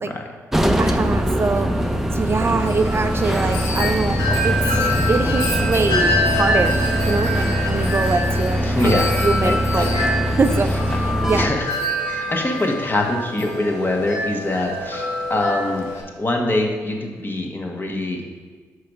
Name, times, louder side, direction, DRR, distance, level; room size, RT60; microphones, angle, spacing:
sound 1, 0.5-11.5, equal, 5° right, 0.7 m, -22 dB
voice 1, 0.8-1.7 2.1-6.8 7.0-10.0 10.4-10.7 11.0-11.5, right 4 dB, 40° right, 7 dB, 0.5 m, -23 dB
Wind chime, 2.6-16.0, left 1 dB, 90° left, 1.4 m, -26 dB
voice 2, 8.6-9.1 9.4-10.0 11.3-11.7 12.0-15.9 16.2-18.2, left 2 dB, 30° left, 1 dB, 1.5 m, -24 dB
5.5 x 4.9 x 5.4 m, 1.5 s
supercardioid pair, 55°, 7 cm